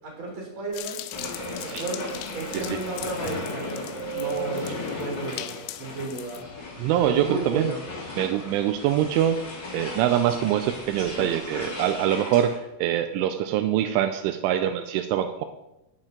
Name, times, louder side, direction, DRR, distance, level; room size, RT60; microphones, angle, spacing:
voice 1, 0.0-1.0 1.5-5.5 5.8-6.4 7.0-7.8, right 2 dB, 25° right, -1 dB, 4.5 m, -33 dB
sound 1, 0.7-6.4, left 14 dB, 85° left, 3.0 m, -40 dB
sound 2, 1.1-12.6, left 1 dB, 30° left, 2.1 m, -36 dB
voice 2, 6.8-7.7 8.1-9.4 9.7-15.5, right 11 dB, 85° right, 9 dB, 3.1 m, -24 dB
9.0 x 7.8 x 8.8 m, 0.91 s
omnidirectional pair, 5.6 m